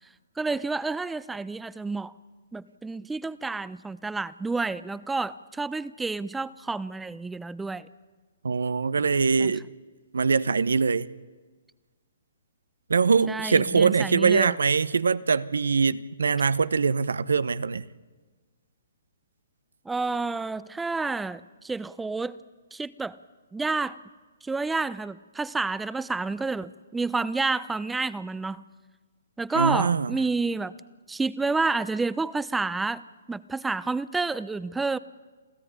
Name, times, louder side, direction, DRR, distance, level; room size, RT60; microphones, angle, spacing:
voice 1, 0.4-2.1 2.5-7.9 9.4-9.5 13.3-14.6 19.9-22.4 22.7-23.2 23.5-24.0 24.4-28.6 29.4-30.7 31.1-35.0, right 3 dB, 5° right, 0.7 m, -29 dB
voice 2, 8.4-9.6 10.1-11.1 12.9-17.8 29.5-30.2, right 5 dB, 80° right, 1.0 m, -23 dB
28.0 x 15.0 x 9.8 m
hypercardioid pair, 135°, 0 cm